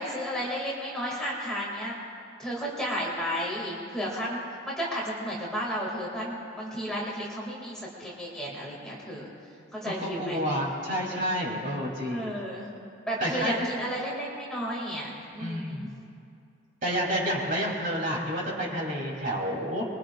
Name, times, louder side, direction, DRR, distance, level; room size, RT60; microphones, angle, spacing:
voice 1, 0.0-2.0 2.4-9.3 9.7-10.4 12.1-12.7 13.1-15.9, equal, 5° left, -5 dB, 2.4 m, -33 dB
voice 2, 9.8-12.4 13.2-13.7 15.4-15.9 16.8-19.9, equal, 40° right, -3 dB, 3.5 m, -29 dB
24.5 x 22.5 x 2.5 m, 2.5 s
head